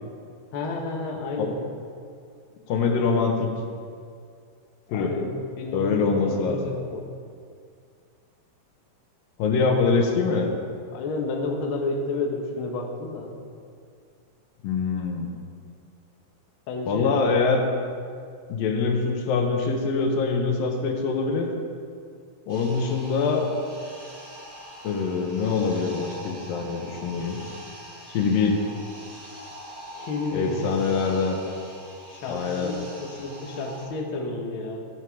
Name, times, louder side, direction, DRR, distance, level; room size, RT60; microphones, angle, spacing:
voice 1, 0.5-1.6 4.9-7.0 10.9-13.3 16.7-17.1 29.9-30.8 32.1-34.9, left 3 dB, 65° left, 2 dB, 1.3 m, -31 dB
voice 2, 2.7-3.5 4.9-5.1 5.7-6.6 9.4-10.5 14.6-15.3 16.9-17.7 18.5-21.5 22.5-23.5 24.8-27.4 28.1-28.6 30.3-31.4 32.3-32.7, left 4 dB, 85° left, 3 dB, 2.8 m, -24 dB
sound 1, 22.5-33.8, equal, 30° right, 3.4 m, -43 dB
13.0 x 9.5 x 4.6 m, 2.3 s
omnidirectional pair, 4.0 m